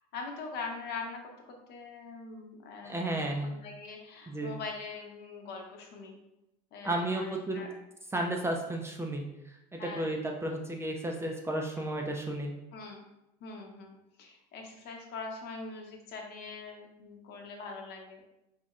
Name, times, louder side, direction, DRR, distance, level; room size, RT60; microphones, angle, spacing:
voice 1, 0.1-3.0 3.4-6.2 6.7-7.7 9.8-10.1 12.7-13.1 13.4-18.2, left 4 dB, 60° left, 1 dB, 0.8 m, -42 dB
voice 2, 2.8-3.5 4.3-4.5 6.8-7.7 8.1-12.5, right 1 dB, 15° right, 1 dB, 0.4 m, -33 dB
4.0 x 3.0 x 2.4 m, 0.91 s
supercardioid pair, 105°, 19 cm